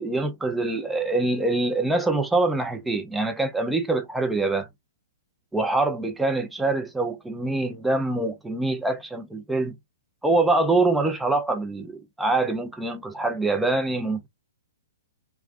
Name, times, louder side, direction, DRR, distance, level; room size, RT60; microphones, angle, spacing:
voice 1, 0.0-4.7 5.5-9.7 10.2-14.3, right 2 dB, 5° right, 0.4 m, -24 dB
3.1 x 2.5 x 2.4 m
hypercardioid pair, 160°, 0 cm